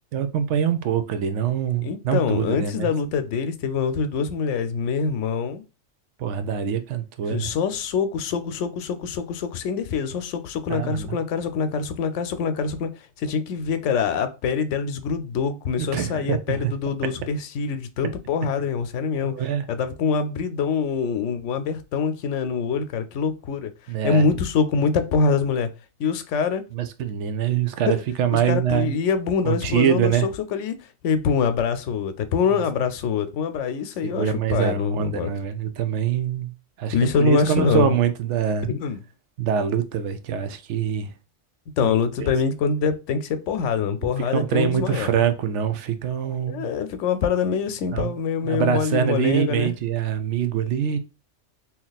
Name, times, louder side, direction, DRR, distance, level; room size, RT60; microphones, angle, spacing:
voice 1, 0.1-2.9 6.2-7.5 10.7-11.2 15.8-16.7 19.3-19.6 23.9-24.3 26.7-28.9 29.4-30.3 34.0-36.5 36.8-38.7 39.4-41.1 41.8-41.9 42.2-42.3 44.3-46.7 47.9-48.1 48.4-51.0, right 8 dB, 75° right, 0.9 m, -24 dB
voice 2, 1.8-5.6 7.3-12.9 13.2-19.3 19.7-23.7 24.0-25.7 26.0-26.6 27.9-28.0 28.3-30.7 31.0-35.3 36.9-38.0 38.7-39.0 41.8-45.2 46.5-49.8, left 5 dB, 85° left, 0.9 m, -24 dB
3.0 x 2.8 x 3.9 m
omnidirectional pair, 1.2 m